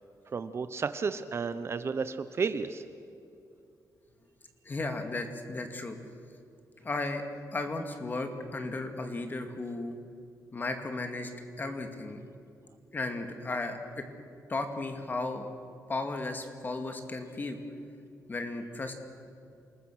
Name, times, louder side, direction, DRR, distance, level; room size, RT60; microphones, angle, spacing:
voice 1, 0.3-2.8, right 5 dB, 40° right, 12 dB, 0.8 m, -32 dB
voice 2, 4.7-6.0 6.8-7.2 7.5-9.9 10.5-11.3 11.6-12.2 12.9-14.0 14.5-15.5 15.9-17.6 18.3-18.9, left 2 dB, 30° left, 6 dB, 2.2 m, -35 dB
28.0 x 20.0 x 6.4 m, 2.5 s
wide cardioid pair, 150°, 7 cm